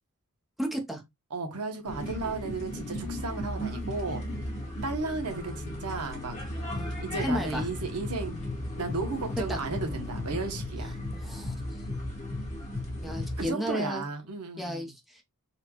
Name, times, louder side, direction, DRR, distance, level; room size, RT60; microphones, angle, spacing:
voice 1, 0.6-1.0 6.7-7.0 7.2-7.7 9.5-9.6 11.1-11.5 13.0-14.0 14.6-15.2, equal, ahead, 0.7 m, -33 dB
voice 2, 1.3-4.2 4.8-6.4 7.0-8.4 8.8-11.0 13.4-14.9, right 3 dB, 85° right, 1.0 m, -34 dB
sound 1, 1.8-13.5, left 1 dB, 30° left, 1.3 m, -35 dB
4.2 x 2.3 x 2.9 m
head